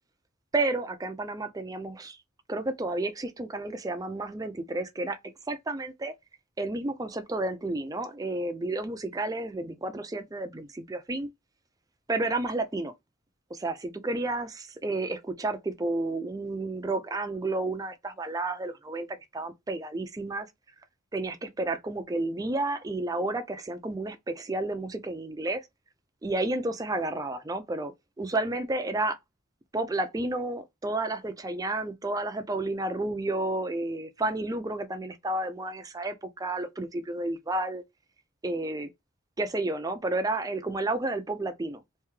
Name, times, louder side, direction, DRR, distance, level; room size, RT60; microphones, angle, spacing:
voice 1, 0.5-2.2 2.5-5.2 5.5-6.1 6.6-11.3 12.1-12.9 13.5-20.5 21.1-25.7 26.2-29.2 29.7-37.8 38.4-38.9 39.4-41.8, right 2 dB, 20° right, 0.4 m, -31 dB
3.4 x 2.7 x 3.1 m
head